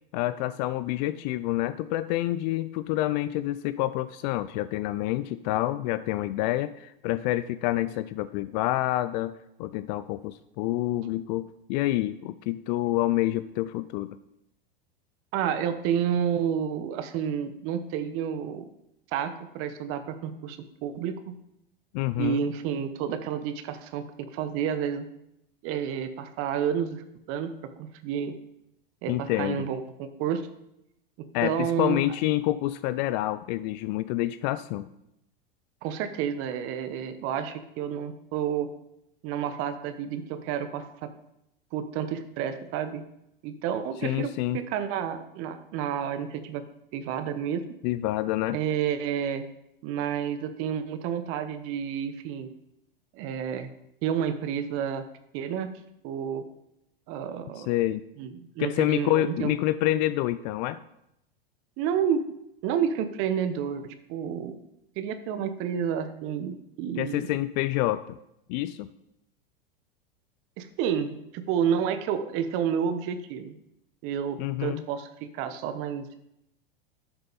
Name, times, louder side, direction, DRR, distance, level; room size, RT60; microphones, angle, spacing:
voice 1, 0.1-14.1 21.9-22.4 29.1-29.7 31.3-34.9 44.0-44.6 47.8-48.6 57.6-58.0 58.6-60.8 67.0-68.2 68.5-68.9 74.4-74.8, left 15 dB, 50° left, 14 dB, 0.5 m, -28 dB
voice 2, 15.3-18.7 19.1-21.4 22.2-25.1 25.6-27.5 27.8-28.4 29.0-30.4 31.2-32.0 35.8-38.7 39.2-41.1 41.7-43.0 43.4-46.6 46.9-47.6 48.5-49.4 49.8-52.5 53.1-53.7 54.0-55.0 55.3-55.7 56.0-56.4 57.1-57.7 58.2-59.5 61.8-62.2 62.6-64.6 65.0-67.4 70.6-73.5 74.0-76.2, right 8 dB, 45° right, 10 dB, 1.1 m, -30 dB
11.0 x 6.6 x 4.1 m, 0.81 s
hypercardioid pair, 95°, 29 cm